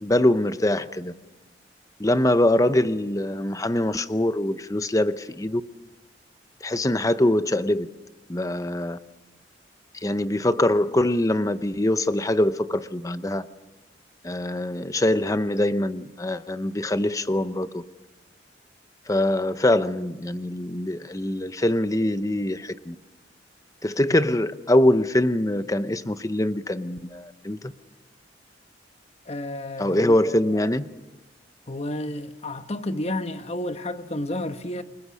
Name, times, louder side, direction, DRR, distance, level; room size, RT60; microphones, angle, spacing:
voice 1, 0.0-1.1 2.0-5.6 6.6-7.9 8.3-9.0 10.0-13.5 14.2-17.8 19.1-22.9 23.8-27.7 29.8-30.9, left 1 dB, 20° left, 0.8 m, -23 dB
voice 2, 29.3-30.2 31.7-34.8, left 1 dB, 35° left, 1.2 m, -31 dB
29.0 x 20.5 x 6.4 m
head